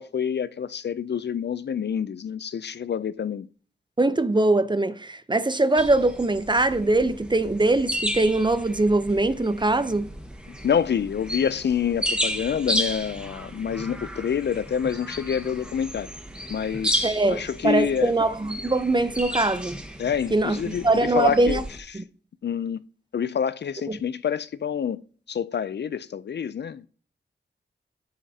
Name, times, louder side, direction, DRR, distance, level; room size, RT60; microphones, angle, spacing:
voice 1, 0.0-3.5 10.6-16.1 16.5-18.1 20.0-21.6 22.4-22.8 23.1-25.0 25.3-26.9, left 8 dB, 60° left, 0.4 m, -27 dB
voice 2, 4.0-10.1 17.0-19.8 20.3-21.6 21.9-22.0 23.9-24.0, right 2 dB, 25° right, 0.7 m, -22 dB
sound 1, 5.8-21.8, equal, 5° right, 1.5 m, -33 dB
9.7 x 8.5 x 2.8 m
cardioid pair, 60°, 20 cm